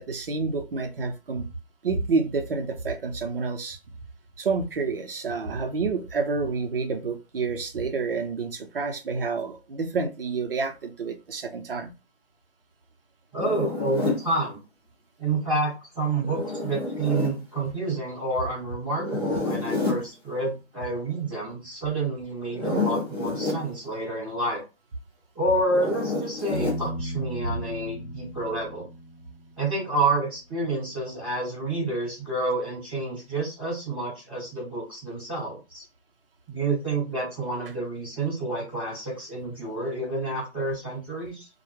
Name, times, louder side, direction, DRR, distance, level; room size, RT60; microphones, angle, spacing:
voice 1, 0.0-1.5 1.8-3.8 4.4-11.9 27.4-27.6, right 4 dB, 55° right, 5 dB, 0.5 m, -29 dB
voice 2, 13.3-14.6 15.2-24.6 25.3-28.9 29.6-35.8 36.5-41.5, right 2 dB, 5° right, -11 dB, 0.9 m, -29 dB
Zipper (clothing), 13.4-14.2 16.2-17.4 19.0-20.1 22.4-23.6 25.7-26.8, left 3 dB, 20° left, 0.6 m, -29 dB
Piano, 26.5-30.2, equal, 70° left, 1.0 m, -36 dB
2.1 x 2.0 x 3.1 m, 0.29 s
hypercardioid pair, 170°, 33 cm